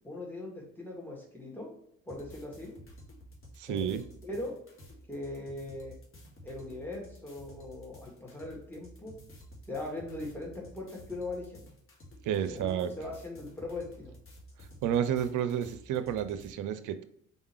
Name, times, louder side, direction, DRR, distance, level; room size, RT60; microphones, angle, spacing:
voice 1, 0.0-1.7 2.1-2.7 3.7-4.6 5.1-5.9 6.4-9.1 9.7-11.6 12.5-14.2, left 2 dB, 5° left, -2 dB, 1.8 m, -40 dB
sound 1, 2.1-16.5, equal, 35° left, 1.6 m, -52 dB
voice 2, 3.6-4.0 12.2-12.9 14.8-17.0, right 9 dB, 50° right, 11 dB, 0.6 m, -30 dB
4.0 x 3.6 x 3.1 m, 0.69 s
hypercardioid pair, 55°, 39 cm